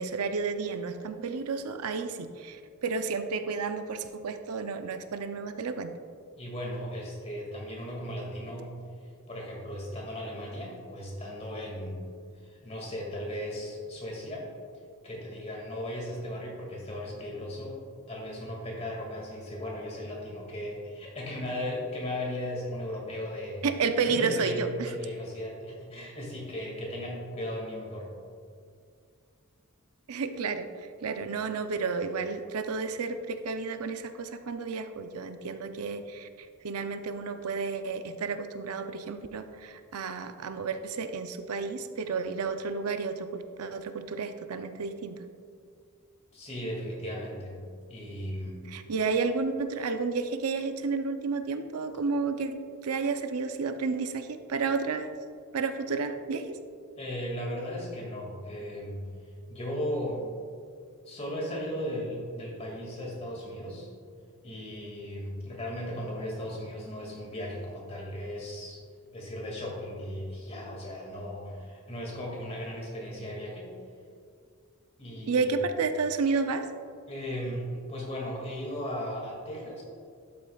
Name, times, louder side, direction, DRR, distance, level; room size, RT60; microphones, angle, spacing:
voice 1, 0.0-5.9 23.6-24.9 30.1-45.2 48.7-52.6 52.8-55.1 55.5-56.6 75.3-76.7, right 4 dB, 80° right, 8 dB, 0.5 m, -31 dB
voice 2, 6.4-8.8 9.3-12.0 12.4-14.5 15.0-17.8 18.1-23.6 24.1-28.1 46.3-47.6 47.9-48.7 57.0-59.1 59.5-60.2 61.0-63.9 64.4-68.8 69.1-73.7 75.0-75.6 77.1-79.8, equal, 30° left, -2 dB, 2.1 m, -36 dB
12.0 x 8.4 x 2.3 m, 2.2 s
head